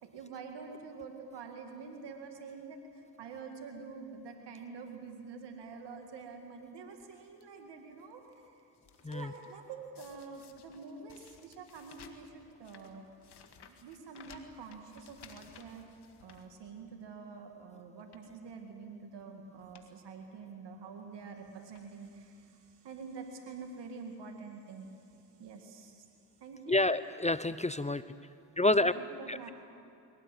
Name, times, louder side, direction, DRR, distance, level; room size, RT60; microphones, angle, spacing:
voice 1, 0.0-8.6 9.1-13.1 13.6-15.9 16.2-26.1 26.4-26.9 28.7-29.5, right 5 dB, 85° right, 3 dB, 2.0 m, -47 dB
sound 1, 7.0-7.4 8.0-8.3 8.6-9.6 10.0-17.1 17.4-17.6 18.0-18.4 19.2-19.3 19.6-19.9 20.2-20.3 21.2-21.4 21.7-22.2 23.0-23.1 23.3-23.4, left 6 dB, 75° left, 1.9 m, -58 dB
voice 2, 26.7-28.0 28.6-28.9 29.3-29.5, left 2 dB, 15° left, 14 dB, 0.7 m, -28 dB
22.0 x 17.5 x 9.0 m, 2.8 s
supercardioid pair, 45°, 41 cm